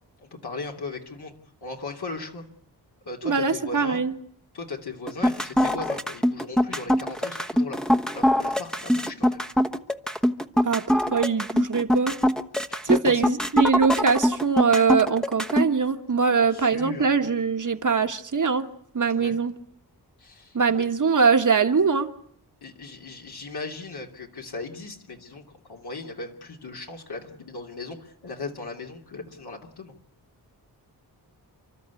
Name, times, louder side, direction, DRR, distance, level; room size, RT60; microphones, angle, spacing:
voice 1, 0.2-1.3 1.6-2.4 3.0-4.0 4.5-7.8 8.1-9.5 12.7-13.2 16.3-17.1 19.1-19.4 20.2-20.6 22.6-30.0, left 3 dB, 70° left, 2.9 m, -37 dB
voice 2, 3.2-4.1 10.6-12.2 12.8-18.7 18.9-19.5 20.5-22.1, right 5 dB, 50° right, 1.6 m, -22 dB
sound 1, 5.1-15.7, equal, ahead, 1.1 m, -22 dB
30.0 x 13.0 x 8.4 m
wide cardioid pair, 75°, 40 cm